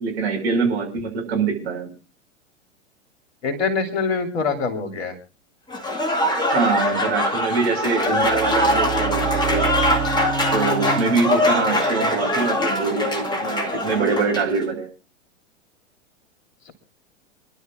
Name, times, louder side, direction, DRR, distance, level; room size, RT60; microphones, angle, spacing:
voice 1, 0.0-1.9 6.5-9.7 10.5-14.9, right 4 dB, 55° right, 1 dB, 5.8 m, -24 dB
voice 2, 3.4-5.1 16.7-16.8, left 4 dB, 60° left, 4 dB, 3.2 m, -24 dB
Applause / Crowd, 5.7-14.5, left 1 dB, 10° left, 2.1 m, -22 dB
sound 1, 7.9-13.8, right 6 dB, 20° right, 5.9 m, -29 dB
27.5 x 11.5 x 2.6 m, 0.32 s
figure-of-eight pair, 95°, 37 cm